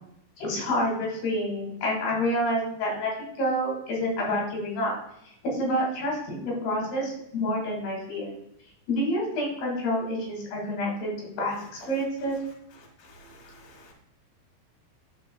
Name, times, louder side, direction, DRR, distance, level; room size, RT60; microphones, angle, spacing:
voice 1, 0.4-4.9 5.4-8.4 8.9-11.1 11.4-11.6 11.8-12.4, equal, 85° left, -2 dB, 4.4 m, -28 dB
voice 2, 13.0-13.9, left 1 dB, 35° left, -1 dB, 1.6 m, -52 dB
13.5 x 4.6 x 2.3 m, 0.78 s
omnidirectional pair, 4.5 m